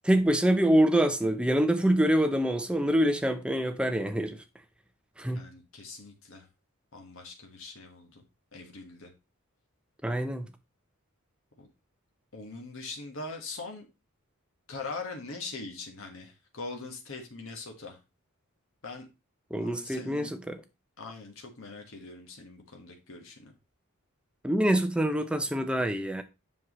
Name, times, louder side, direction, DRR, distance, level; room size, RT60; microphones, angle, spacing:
voice 1, 0.0-4.4 5.2-5.5 10.0-10.5 19.5-20.6 24.4-26.2, right 1 dB, 5° right, 0.5 m, -25 dB
voice 2, 5.3-6.5 6.9-8.2 8.5-9.1 11.6-11.7 12.3-13.9 14.7-18.0 18.8-19.1 19.5-20.3 21.0-23.5, left 3 dB, 65° left, 1.5 m, -42 dB
7.4 x 6.0 x 3.1 m
head